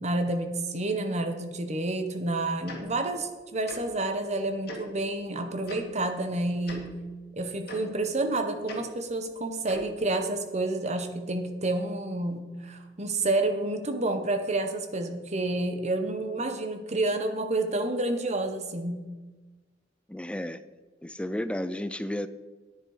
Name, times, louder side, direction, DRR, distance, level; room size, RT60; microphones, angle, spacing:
voice 1, 0.0-6.9 7.4-19.0, right 2 dB, 35° right, 6 dB, 1.2 m, -29 dB
Tick-tock, 2.7-2.8 3.7-3.8 4.7-4.8 5.7-5.8 6.6-6.8 7.7-7.8 8.7-8.8 9.6-9.9, left 1 dB, 55° left, 2.4 m, -39 dB
voice 2, 20.1-20.6 21.0-22.3, left 1 dB, 5° left, 13 dB, 0.4 m, -32 dB
10.0 x 9.8 x 5.0 m, 1.3 s
head